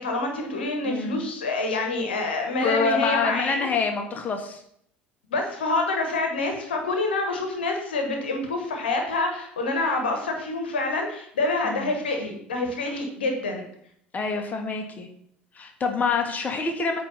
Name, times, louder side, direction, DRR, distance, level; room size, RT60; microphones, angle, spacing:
voice 1, 0.0-3.7 5.3-13.7, left 2 dB, 75° left, 3 dB, 1.1 m, -27 dB
voice 2, 0.8-1.2 2.6-4.6 11.6-11.9 14.1-15.1 15.5-17.0, left 4 dB, 30° left, 4 dB, 1.1 m, -26 dB
8.9 x 3.2 x 5.6 m, 0.69 s
figure-of-eight pair, 60°, 6 cm